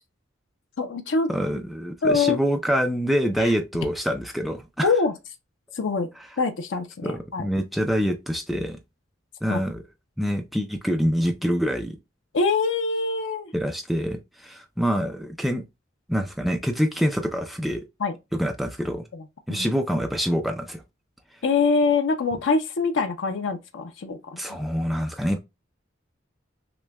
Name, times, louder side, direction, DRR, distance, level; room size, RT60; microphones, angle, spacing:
voice 1, 0.8-1.3 2.0-2.4 3.4-3.5 4.8-5.1 5.7-6.1 6.4-7.5 9.5-9.6 12.3-13.5 18.0-18.1 19.1-19.2 19.5-19.7 21.4-24.6, left 4 dB, 80° left, 0.5 m, -24 dB
voice 2, 1.3-4.9 7.0-8.8 9.4-9.8 10.2-12.0 13.5-15.6 16.1-17.9 18.3-19.0 19.5-20.8 24.4-25.4, equal, ahead, 0.3 m, -26 dB
5.9 x 2.2 x 2.2 m
head